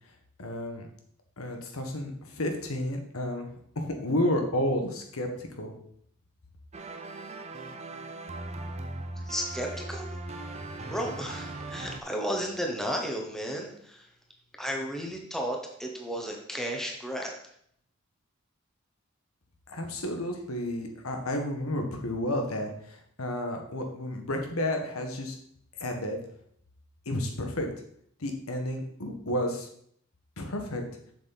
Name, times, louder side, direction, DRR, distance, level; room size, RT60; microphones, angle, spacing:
voice 1, 0.4-0.9 1.4-3.5 3.7-5.3 5.6-5.7 19.7-22.7 23.2-25.3 25.8-26.2 27.0-27.7 28.2-29.7 30.4-30.9, left 1 dB, 85° left, 3 dB, 1.5 m, -31 dB
sound 1, 6.7-12.0, right 2 dB, 30° right, 0.6 m, -39 dB
voice 2, 9.2-10.1 10.8-14.1 14.6-17.3, equal, ahead, 1 dB, 1.1 m, -33 dB
7.5 x 7.1 x 4.1 m, 0.67 s
head